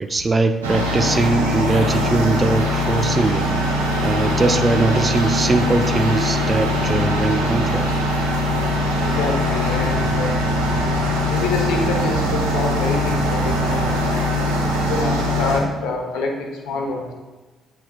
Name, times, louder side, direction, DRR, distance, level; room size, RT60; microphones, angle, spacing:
voice 1, 0.0-3.4 4.0-7.9, right 3 dB, 30° right, 8 dB, 0.5 m, -20 dB
sound 1, 0.6-15.6, left 1 dB, 80° right, 0.9 m, -21 dB
voice 2, 9.0-10.3 11.3-14.3 14.9-17.0, left 3 dB, 65° left, 2 dB, 1.0 m, -26 dB
8.5 x 5.8 x 2.4 m, 1.3 s
figure-of-eight pair, 45°, 0 cm